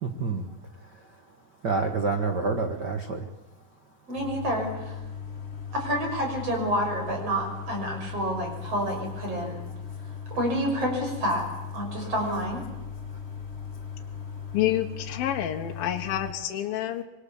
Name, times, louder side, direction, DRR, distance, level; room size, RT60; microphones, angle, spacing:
voice 1, 0.0-0.5 1.6-3.2 12.0-12.1, right 4 dB, 60° right, 6 dB, 1.1 m, -28 dB
sound 1, 4.1-16.3, left 7 dB, 35° left, 1.0 m, -38 dB
voice 2, 4.1-5.0 5.7-9.6 10.3-11.5 11.7-12.6, equal, 35° right, 2 dB, 7.2 m, -28 dB
voice 3, 14.5-17.0, left 12 dB, 70° left, 2 dB, 3.0 m, -28 dB
26.0 x 23.0 x 7.2 m, 1.1 s
omnidirectional pair, 4.6 m